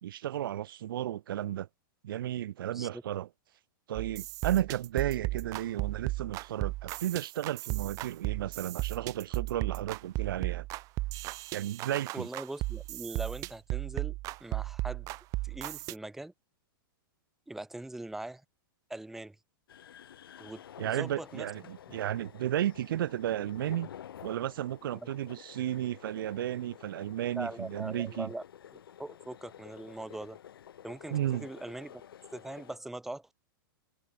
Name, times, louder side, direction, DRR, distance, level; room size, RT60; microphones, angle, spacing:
voice 1, 0.0-1.7 2.0-3.3 3.9-10.7 11.5-12.3 20.8-23.9 24.2-28.3 31.1-31.5, right 12 dB, 70° right, 0.9 m, -33 dB
voice 2, 2.7-3.0 12.1-15.1 15.4-16.3 17.5-18.4 18.9-19.4 20.4-21.5 24.9-25.1 27.3-28.4 29.0-30.4 30.8-32.0 32.3-33.3, right 2 dB, 5° right, 1.5 m, -41 dB
sound 1, 4.0-16.0, right 20 dB, 30° right, 1.8 m, -35 dB
sound 2, 19.7-32.8, left 10 dB, 85° left, 6.1 m, -51 dB
supercardioid pair, 165°, 12 cm